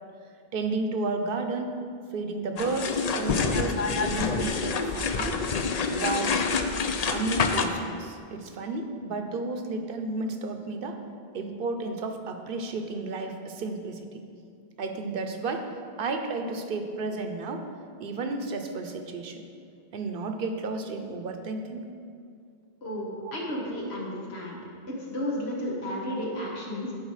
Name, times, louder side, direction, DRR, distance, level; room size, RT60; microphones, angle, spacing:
voice 1, 0.5-1.8 2.1-5.4 5.8-6.4 7.1-11.0 11.3-14.2 14.8-15.7 16.0-17.7 18.0-19.4 19.9-21.8 23.2-23.3, right 3 dB, 60° right, 6 dB, 0.9 m, -32 dB
sound 1, 2.6-7.7, left 5 dB, 50° left, 0.5 m, -27 dB
voice 2, 22.8-24.6 24.9-26.9, left 1 dB, 80° left, -3 dB, 1.8 m, -33 dB
11.5 x 4.9 x 4.8 m, 2.3 s
omnidirectional pair, 1.1 m